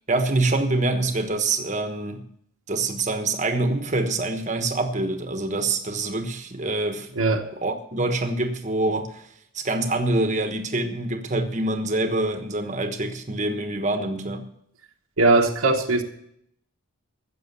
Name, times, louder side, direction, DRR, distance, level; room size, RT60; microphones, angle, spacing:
voice 1, 0.1-2.3 2.7-7.1 7.6-9.2 9.5-14.5, right 2 dB, 35° right, 1.2 m, -25 dB
voice 2, 7.1-7.5 15.2-16.0, right 2 dB, 80° right, 1.3 m, -19 dB
15.5 x 6.6 x 6.8 m
head